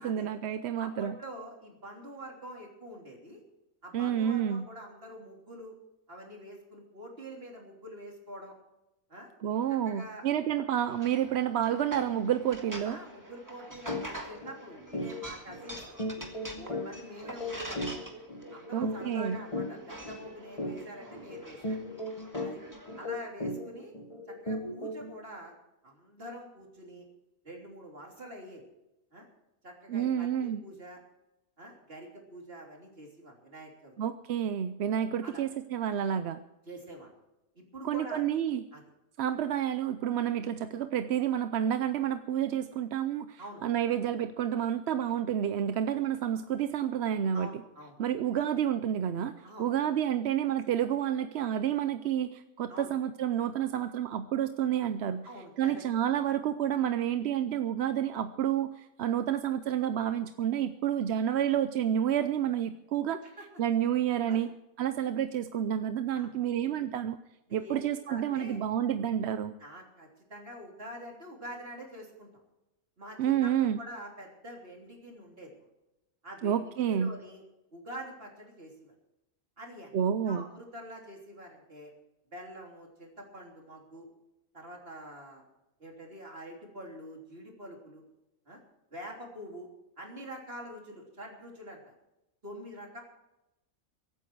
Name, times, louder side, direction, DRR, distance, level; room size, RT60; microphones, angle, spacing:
voice 1, 0.0-1.1 3.9-4.6 9.4-13.0 18.7-19.4 29.9-30.6 34.0-36.4 37.8-38.6 39.2-47.5 48.0-55.3 55.6-63.2 63.6-64.5 64.8-67.2 67.5-69.5 73.2-73.8 76.4-77.1 79.9-80.5, right 9 dB, 60° right, 10 dB, 0.8 m, -29 dB
voice 2, 0.8-3.4 3.8-5.7 6.1-8.5 9.1-9.3 9.7-10.3 12.8-15.9 16.5-18.0 18.5-21.9 22.4-22.6 23.0-23.9 24.3-25.5 25.8-27.1 27.4-28.6 29.1-29.3 29.6-31.0 31.6-34.0 35.2-35.4 36.7-37.1 37.6-38.2 38.7-38.8 43.4-43.6 47.3-48.0 48.3-48.5 49.4-49.7 52.7-52.9 55.2-55.8 63.2-63.5 64.3-64.5 66.1-66.3 67.5-67.8 68.1-68.6 69.6-72.4 73.0-75.6 76.2-76.6 76.9-77.4 77.7-78.9 79.6-80.0 80.3-81.9 82.3-84.1 84.5-85.4 85.8-88.0 88.5-88.6 88.9-89.7 90.0-91.9 92.4-93.0, right 1 dB, 45° right, 0 dB, 3.6 m, -46 dB
sound 1, 10.9-23.1, right 1 dB, 15° right, 1.9 m, -46 dB
sound 2, 13.9-14.1 14.4-14.6 14.9-25.2, left 1 dB, 25° left, 1.4 m, -37 dB
23.5 x 9.2 x 4.7 m, 0.92 s
omnidirectional pair, 1.4 m